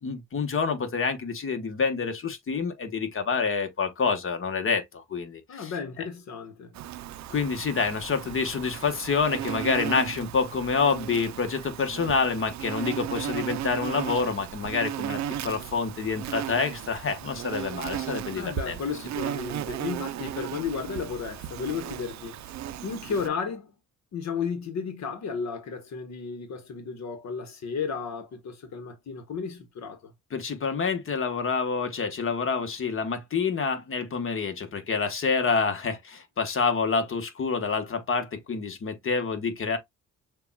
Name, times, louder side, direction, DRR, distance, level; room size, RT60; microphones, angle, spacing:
voice 1, 0.0-5.7 6.0-6.1 7.3-18.7 30.3-39.8, left 5 dB, 45° left, 1.2 m, -27 dB
voice 2, 5.5-6.8 18.3-22.5 22.8-23.7 24.1-30.1, left 6 dB, 65° left, 1.2 m, -33 dB
Insect, 6.7-23.3, right 11 dB, 65° right, 0.5 m, -36 dB
6.7 x 2.4 x 2.3 m
cardioid pair, 90°, 30 cm